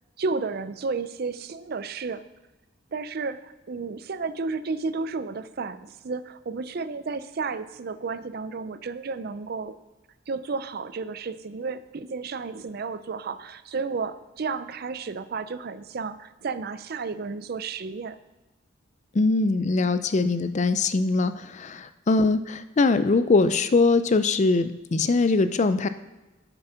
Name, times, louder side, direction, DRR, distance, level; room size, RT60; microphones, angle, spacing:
voice 1, 0.2-2.3 2.9-9.8 10.3-18.2 22.2-22.4, right 4 dB, 55° right, 13 dB, 0.5 m, -32 dB
voice 2, 19.1-25.9, left 3 dB, 40° left, 11 dB, 0.4 m, -22 dB
8.0 x 6.9 x 5.7 m, 1.1 s
head